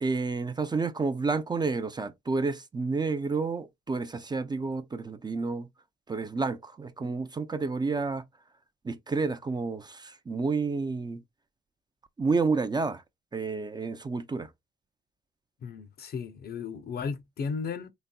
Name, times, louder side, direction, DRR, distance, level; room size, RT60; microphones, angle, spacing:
voice 1, 0.0-5.7 6.1-8.2 8.8-11.2 12.2-13.0 13.3-14.5, right 4 dB, 20° right, 0.4 m, -30 dB
voice 2, 15.6-17.9, left 5 dB, 50° left, 0.6 m, -35 dB
4.0 x 3.4 x 2.2 m
cardioid pair, 90°, 20 cm